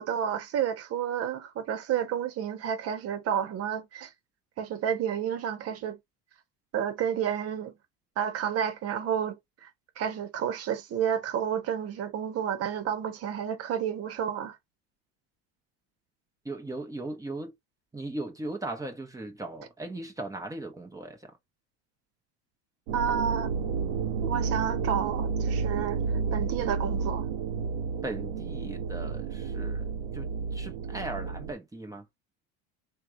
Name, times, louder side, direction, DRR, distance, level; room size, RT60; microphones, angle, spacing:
voice 1, 0.0-4.1 4.6-6.0 6.7-7.7 8.2-9.7 10.0-14.6 22.9-23.5 24.2-26.0 26.3-27.3, right 8 dB, 50° right, 1.5 m, -30 dB
voice 2, 16.4-17.5 17.9-21.4 28.0-32.0, right 2 dB, 10° right, 1.1 m, -38 dB
sound 1, 22.9-31.5, right 5 dB, 80° right, 1.3 m, -31 dB
3.3 x 3.2 x 4.8 m
supercardioid pair, 110°, 31 cm